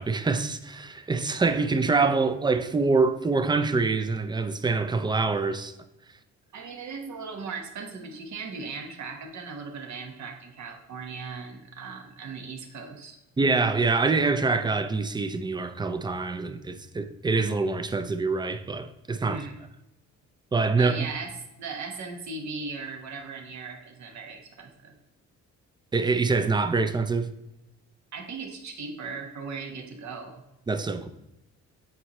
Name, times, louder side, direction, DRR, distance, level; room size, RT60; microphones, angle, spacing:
voice 1, 0.0-5.7 13.4-19.4 20.5-21.1 25.9-27.3 30.7-31.1, right 4 dB, 15° right, 0.4 m, -25 dB
voice 2, 6.5-13.2 19.2-19.6 20.8-21.3 21.6-25.0 28.1-30.4, right 4 dB, 65° right, 1.2 m, -38 dB
7.8 x 4.3 x 3.0 m
cardioid pair, 90°, 30 cm